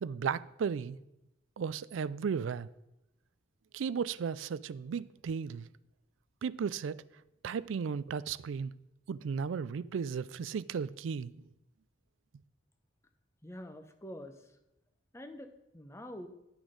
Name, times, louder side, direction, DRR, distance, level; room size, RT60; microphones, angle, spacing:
voice 1, 0.0-1.0 1.6-2.7 3.7-5.7 6.4-7.0 7.4-8.7 9.1-11.3, right 6 dB, 85° right, 0.4 m, -35 dB
voice 2, 13.4-14.5 15.1-16.3, equal, 15° left, 0.7 m, -46 dB
11.5 x 6.2 x 5.1 m
head